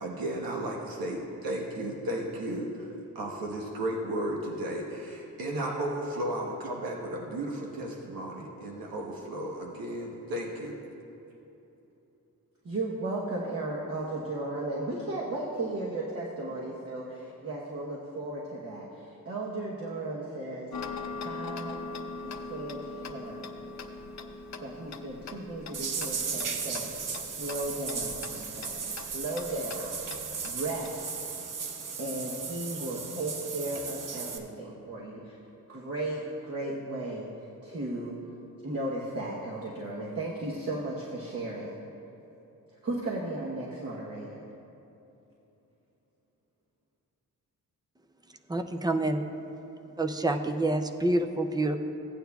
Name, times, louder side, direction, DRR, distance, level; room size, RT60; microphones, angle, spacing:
voice 1, 0.0-2.9 3.1-10.7, right 1 dB, 85° right, -2 dB, 1.1 m, -34 dB
voice 2, 12.6-21.0 21.2-21.8 22.2-23.5 24.6-26.9 27.2-31.1 32.0-35.4 35.7-37.3 37.6-38.2 38.6-41.8 42.8-44.4, right 2 dB, 45° right, -4 dB, 1.0 m, -35 dB
Tick-tock, 20.7-30.9, left 4 dB, 50° left, 0.6 m, -42 dB
sound 1, 25.7-34.4, right 5 dB, 65° right, 0.8 m, -36 dB
voice 3, 48.5-49.2 50.0-51.8, right 2 dB, 10° right, 7 dB, 0.4 m, -27 dB
16.0 x 9.0 x 2.3 m, 3.0 s
wide cardioid pair, 170°, 34 cm